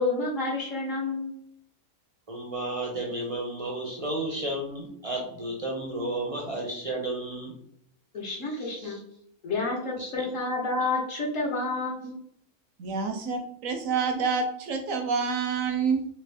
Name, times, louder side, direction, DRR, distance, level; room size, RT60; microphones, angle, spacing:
voice 1, 0.0-1.3 8.1-9.0 9.4-12.2, left 3 dB, 55° left, -2 dB, 1.4 m, -29 dB
voice 2, 2.3-7.5 8.6-9.0 10.0-10.3, right 1 dB, 40° right, -1 dB, 0.5 m, -33 dB
voice 3, 12.8-16.1, right 5 dB, 65° right, 4 dB, 0.9 m, -28 dB
3.4 x 3.0 x 3.3 m, 0.68 s
omnidirectional pair, 1.6 m